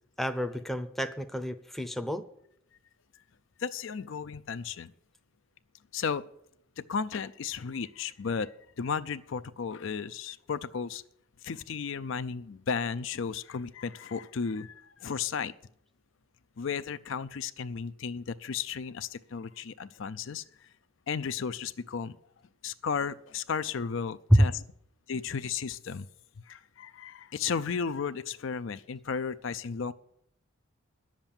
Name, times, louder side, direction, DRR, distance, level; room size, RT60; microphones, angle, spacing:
voice 1, 0.2-2.2 24.3-24.5, equal, ahead, 8 dB, 0.6 m, -26 dB
voice 2, 3.6-4.9 5.9-6.3 6.8-8.5 8.8-11.0 11.4-15.5 16.6-20.7 21.1-22.2 22.6-24.6 25.1-26.1 26.5-29.9, left 6 dB, 60° left, 12 dB, 0.4 m, -34 dB
10.5 x 7.4 x 8.8 m, 0.72 s
head